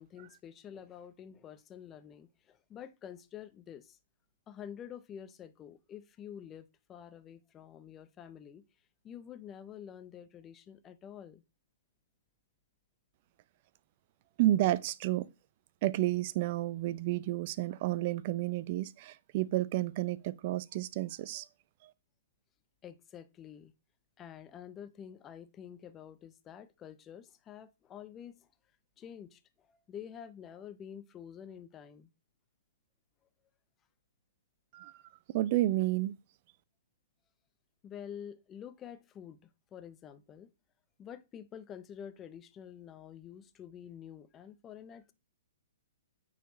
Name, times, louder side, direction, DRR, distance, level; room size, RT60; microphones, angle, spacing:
voice 1, 0.0-4.0 4.5-8.6 9.0-11.4 22.8-23.7 24.2-28.5 29.0-32.1 37.8-40.5 41.0-45.1, left 9 dB, 20° left, 0.7 m, -48 dB
voice 2, 14.4-15.3 15.8-21.5 21.8-21.9 34.7-35.0 35.3-36.1, right 15 dB, 45° right, 0.5 m, -31 dB
9.1 x 4.1 x 3.1 m
hypercardioid pair, 130°, 0 cm